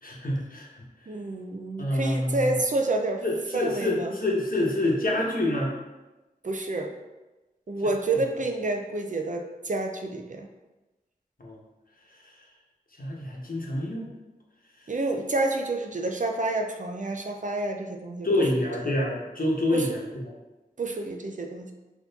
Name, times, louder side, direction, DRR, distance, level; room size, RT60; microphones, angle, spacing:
voice 1, 0.0-0.7 1.8-2.6 3.2-5.7 11.4-11.6 12.1-12.4 13.0-14.1 14.8-14.9 18.2-20.3, left 1 dB, 65° left, -2 dB, 1.0 m, -27 dB
voice 2, 1.1-3.2 3.5-4.1 6.4-6.9 7.7-10.5 14.9-18.3 19.7-19.9 20.8-21.7, right 2 dB, 55° right, 4 dB, 0.5 m, -29 dB
4.0 x 3.0 x 3.9 m, 1.1 s
wide cardioid pair, 50°, 16 cm